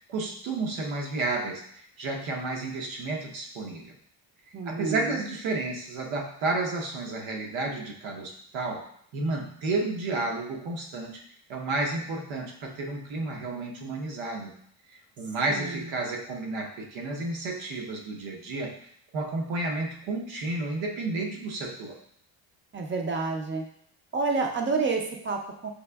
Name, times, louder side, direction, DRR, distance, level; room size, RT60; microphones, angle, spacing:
voice 1, 0.0-1.6 2.0-3.9 4.7-8.9 9.1-11.2 11.5-14.5 14.9-18.7 19.1-22.0, right 2 dB, 85° right, 1 dB, 0.9 m, -31 dB
voice 2, 4.5-5.2 15.5-15.9 22.7-23.6 24.1-25.7, right 4 dB, 30° right, 3 dB, 0.4 m, -29 dB
5.1 x 2.5 x 2.2 m, 0.66 s
cardioid pair, 140°, 45 cm